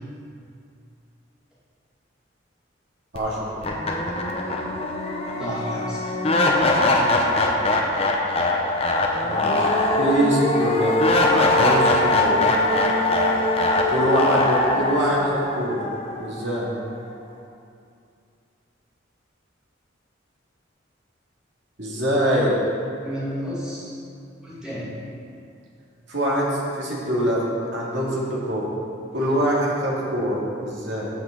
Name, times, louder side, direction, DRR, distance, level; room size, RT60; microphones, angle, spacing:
sound 1, 3.1-3.2 3.6-16.7, left 2 dB, 30° left, 0.8 m, -21 dB
voice 1, 3.1-3.5 9.2-9.7 10.0-11.0 11.3-12.4 13.9-15.8 16.2-16.7 21.8-22.6 26.1-27.4 27.7-28.7 29.1-31.1, equal, 70° right, -5 dB, 2.0 m, -24 dB
voice 2, 5.4-6.0 23.0-23.9 24.4-25.0 29.1-29.3, equal, 5° right, -11 dB, 2.5 m, -32 dB
13.0 x 6.1 x 3.9 m, 2.5 s
head